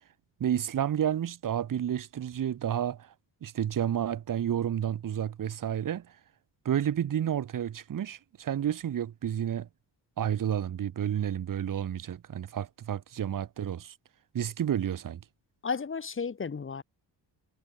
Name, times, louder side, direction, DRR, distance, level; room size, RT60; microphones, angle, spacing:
voice 1, 0.4-3.1 3.4-6.1 6.6-9.7 10.2-13.9 14.3-15.2, right 10 dB, 45° right, 0.7 m, -30 dB
voice 2, 15.6-16.8, left 5 dB, 25° left, 1.0 m, -33 dB
wide cardioid pair, 155°, 46 cm